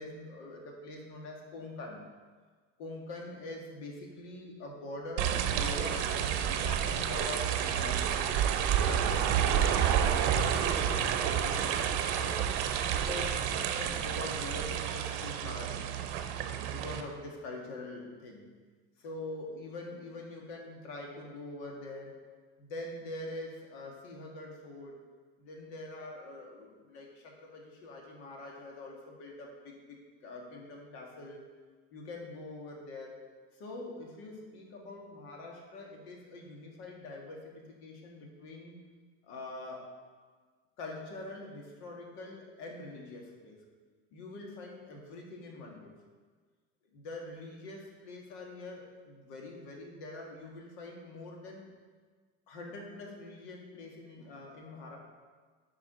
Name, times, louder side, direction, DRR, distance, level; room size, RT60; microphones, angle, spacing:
voice 1, 0.0-2.0 2.8-8.2 8.8-12.4 12.9-15.9 16.7-18.5 19.0-22.2 22.6-25.0 25.4-31.4 31.9-33.2 33.5-38.8 39.2-39.9 40.8-43.6 44.1-45.9 46.9-51.7 52.5-55.0, left 2 dB, 85° left, 0 dB, 1.9 m, -44 dB
sound 1, 5.2-17.0, right 9 dB, 85° right, 0.8 m, -33 dB
sound 2, 5.6-14.8, right 8 dB, 45° right, 0.6 m, -31 dB
8.5 x 5.0 x 5.1 m, 1.5 s
cardioid pair, 155°, 33 cm